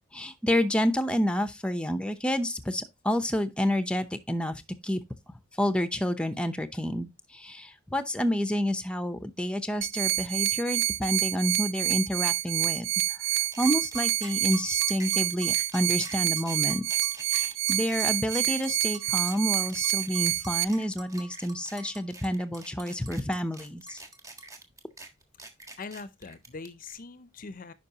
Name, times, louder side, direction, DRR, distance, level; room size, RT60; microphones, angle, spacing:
voice 1, 0.1-5.0 5.6-13.2 13.6-16.8 17.3-24.0, equal, 5° left, 0.7 m, -29 dB
sound 1, 9.8-20.6, right 14 dB, 70° right, 0.4 m, -28 dB
sound 2, 13.5-26.9, right 2 dB, 15° right, 1.5 m, -45 dB
voice 2, 25.8-27.7, left 4 dB, 45° left, 0.6 m, -42 dB
10.5 x 5.2 x 2.9 m
head